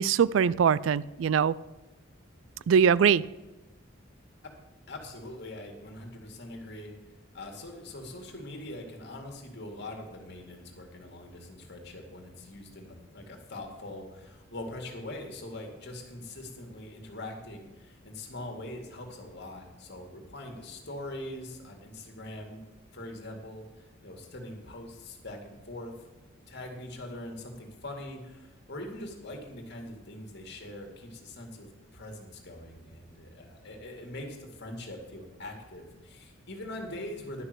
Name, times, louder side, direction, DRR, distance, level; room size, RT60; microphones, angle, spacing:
voice 1, 0.0-1.5 2.7-3.2, right 7 dB, 65° right, 20 dB, 0.3 m, -22 dB
voice 2, 4.9-6.9 7.3-22.6 22.9-25.9 26.5-37.4, left 1 dB, 55° left, 2 dB, 2.2 m, -42 dB
11.5 x 6.0 x 7.9 m, 1.1 s
head